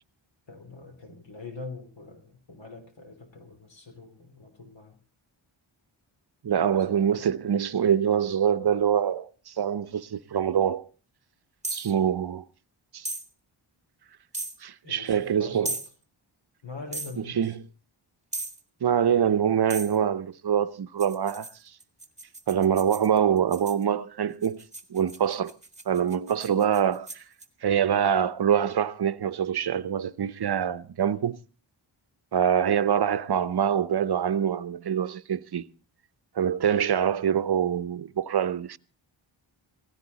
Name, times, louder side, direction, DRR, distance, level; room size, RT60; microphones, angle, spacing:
voice 1, 0.5-5.0 6.9-7.3 14.8-15.8 16.6-17.6, left 3 dB, 65° left, 3.2 m, -43 dB
voice 2, 6.4-10.8 11.7-12.4 12.9-13.1 14.6-15.7 17.3-17.7 18.8-21.5 22.5-24.6 24.9-25.5 25.9-27.2 27.6-31.4 32.3-35.7 36.4-38.8, right 8 dB, 55° right, 0.8 m, -25 dB
sound 1, 11.6-11.9 13.0-13.3 14.3-14.6 15.6-15.9 16.9-17.2 18.3-18.6 19.7-20.0 21.0-23.8 24.4-27.5, right 2 dB, 15° right, 1.6 m, -36 dB
16.5 x 16.5 x 4.0 m
wide cardioid pair, 85°, 48 cm